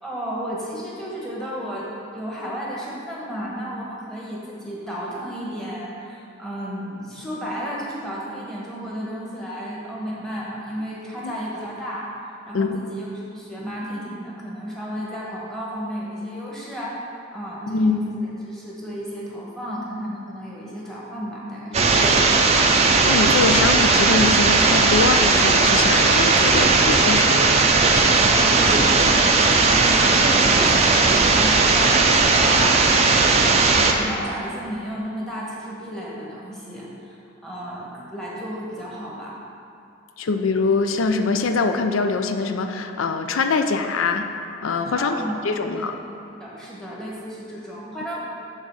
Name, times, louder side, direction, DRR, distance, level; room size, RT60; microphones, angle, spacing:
voice 1, 0.0-12.1 12.4-17.0 17.3-22.4 28.2-37.2 37.4-39.4 44.9-46.0 46.4-48.2, equal, 5° left, -6 dB, 1.1 m, -33 dB
sound 1, 21.7-33.9, right 3 dB, 30° right, 0.4 m, -17 dB
voice 2, 23.0-27.6 40.2-44.3 44.6-45.2 45.4-45.9, left 4 dB, 85° left, 7 dB, 0.5 m, -23 dB
6.6 x 3.6 x 6.2 m, 2.6 s
head